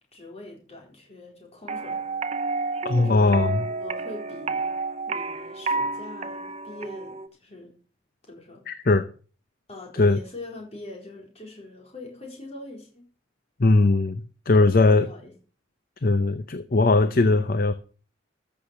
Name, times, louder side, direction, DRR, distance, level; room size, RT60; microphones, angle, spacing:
voice 1, 0.1-2.0 2.9-4.7 5.1-7.7 8.3-8.7 9.7-13.1 14.6-15.3, left 2 dB, 35° left, 4.1 m, -42 dB
sound 1, 1.7-7.3, right 3 dB, 35° right, 0.7 m, -30 dB
voice 2, 2.8-3.6 8.7-9.1 10.0-10.2 13.6-15.1 16.0-17.7, left 3 dB, 50° left, 0.7 m, -20 dB
14.0 x 6.5 x 6.5 m
head